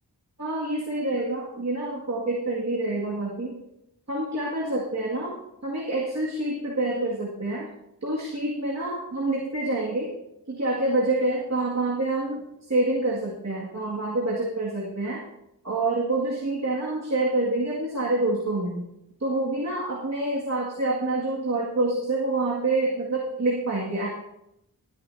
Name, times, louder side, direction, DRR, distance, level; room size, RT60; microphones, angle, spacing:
voice 1, 0.4-3.6 4.1-5.3 5.6-7.7 8.0-10.1 10.5-12.4 12.7-15.2 15.6-18.9 19.2-24.1, right 2 dB, 40° right, -4 dB, 2.1 m, -27 dB
20.5 x 9.9 x 2.7 m, 0.84 s
wide cardioid pair, 85°, 40 cm